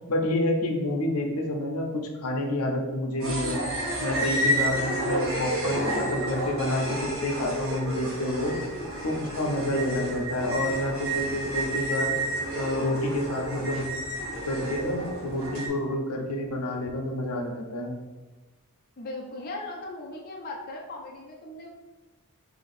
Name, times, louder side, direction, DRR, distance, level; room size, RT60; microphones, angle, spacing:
voice 1, 0.1-3.6 4.0-8.5 9.0-12.2 12.5-13.9 14.4-17.9, left 1 dB, 75° left, 2 dB, 0.7 m, -29 dB
sound 1, 3.2-15.7, right 1 dB, 65° right, 1.4 m, -30 dB
voice 2, 19.0-21.7, left 2 dB, 40° left, -1 dB, 0.5 m, -38 dB
4.2 x 2.9 x 4.1 m, 1.2 s
head